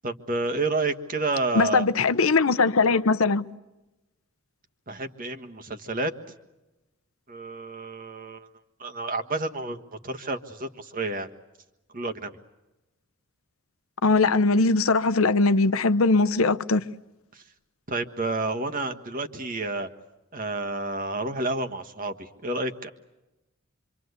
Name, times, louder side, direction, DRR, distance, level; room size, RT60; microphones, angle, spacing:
voice 1, 0.0-1.9 4.9-6.1 7.3-8.5 8.8-11.3 11.9-12.4 17.3-17.4 17.9-19.9 20.3-22.9, right 2 dB, 40° right, 1.6 m, -30 dB
voice 2, 1.5-3.4 14.0-16.8, left 3 dB, 85° left, 0.8 m, -21 dB
26.0 x 25.5 x 8.2 m
head